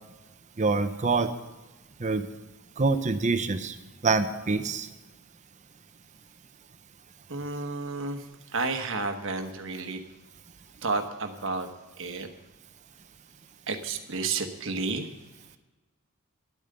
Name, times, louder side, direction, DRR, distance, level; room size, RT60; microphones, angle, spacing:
voice 1, 0.6-1.3 2.0-2.3 2.8-3.8 4.0-4.9, right 3 dB, 35° right, 10 dB, 0.7 m, -25 dB
voice 2, 7.3-8.2 8.5-10.0 10.8-11.7 12.0-12.3 13.7-15.1, right 3 dB, 60° right, 6 dB, 1.1 m, -31 dB
10.5 x 8.8 x 6.7 m, 1.2 s
head